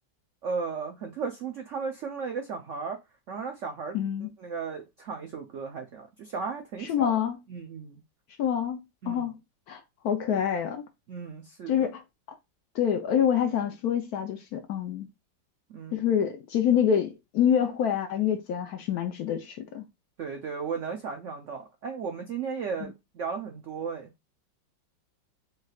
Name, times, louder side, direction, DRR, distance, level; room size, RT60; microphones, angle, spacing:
voice 1, 0.4-3.0 3.3-4.0 4.4-7.2 7.5-8.0 9.0-9.3 11.1-11.9 15.7-16.0 20.2-24.1, right 5 dB, 75° right, 0.7 m, -35 dB
voice 2, 3.9-4.3 6.8-7.4 8.4-9.3 9.7-10.8 11.7-12.0 12.7-15.1 15.9-19.8 22.8-22.9, left 9 dB, 65° left, 1.0 m, -26 dB
4.6 x 3.2 x 2.3 m
omnidirectional pair, 2.0 m